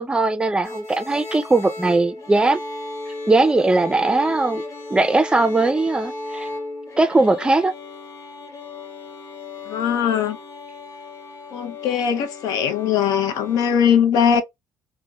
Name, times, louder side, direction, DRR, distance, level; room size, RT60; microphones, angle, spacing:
voice 1, 0.0-2.6 3.3-4.6 4.9-6.5 7.0-7.7, right 2 dB, 15° right, 0.5 m, -19 dB
sound 1, 0.6-13.8, left 2 dB, 50° left, 1.2 m, -35 dB
voice 2, 9.7-10.4 11.5-14.4, left 8 dB, 70° left, 0.6 m, -20 dB
2.6 x 2.1 x 2.2 m
supercardioid pair, 75°, 7 cm